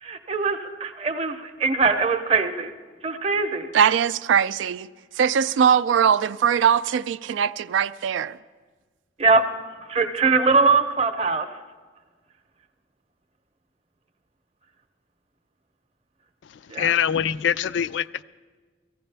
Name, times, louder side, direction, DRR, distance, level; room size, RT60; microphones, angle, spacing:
voice 1, 0.0-2.7 3.0-3.7 9.2-9.4 9.8-11.5 16.7-16.9, right 4 dB, 35° right, 0.7 m, -22 dB
voice 2, 3.7-4.9 5.2-8.4, right 8 dB, 90° right, 0.3 m, -21 dB
voice 3, 16.5-18.2, left 8 dB, 80° left, 0.3 m, -24 dB
18.0 x 15.0 x 3.3 m
head